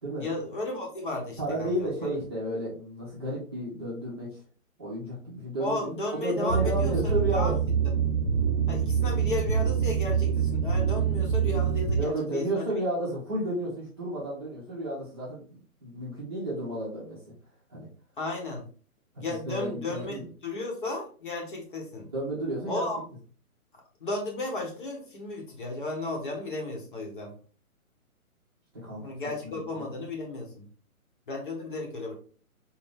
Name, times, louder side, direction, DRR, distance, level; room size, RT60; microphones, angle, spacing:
voice 1, 0.1-2.1 5.6-7.6 8.7-12.7 18.2-18.7 19.2-22.1 22.7-23.0 24.0-27.3 29.0-30.7 31.3-32.1, left 2 dB, 35° left, 0 dB, 1.0 m, -34 dB
voice 2, 1.4-4.4 4.8-7.5 12.0-15.4 15.8-17.2 17.7-17.9 19.3-20.3 22.1-22.9 28.8-29.0 29.7-29.9, right 1 dB, 20° right, -6 dB, 0.8 m, -32 dB
sound 1, 6.5-12.0, right 7 dB, 75° right, 1.1 m, -25 dB
4.2 x 2.7 x 3.5 m, 0.41 s
hypercardioid pair, 170°, 43 cm